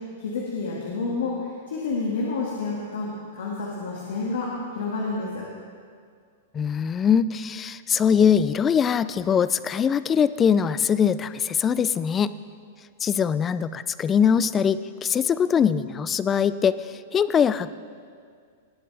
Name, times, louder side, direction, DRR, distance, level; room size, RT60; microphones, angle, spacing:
voice 1, 0.2-5.4, left 3 dB, 85° left, -3 dB, 2.0 m, -29 dB
voice 2, 6.5-12.3 13.0-17.7, left 7 dB, 20° left, 15 dB, 0.3 m, -22 dB
19.0 x 8.5 x 3.4 m, 2.1 s
hypercardioid pair, 140°, 0 cm